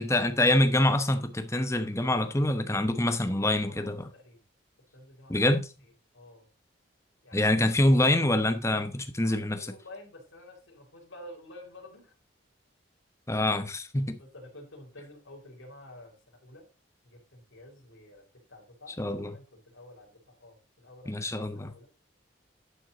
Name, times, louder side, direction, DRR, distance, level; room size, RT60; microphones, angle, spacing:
voice 1, 0.0-4.1 5.3-5.7 7.3-9.7 13.3-14.2 19.0-19.3 21.1-21.7, left 1 dB, 15° left, 0.9 m, -25 dB
voice 2, 3.2-4.4 4.9-5.5 6.1-6.5 7.2-7.5 9.2-12.1 14.2-16.7 17.0-21.9, left 1 dB, 80° left, 3.9 m, -50 dB
11.0 x 6.2 x 3.9 m
head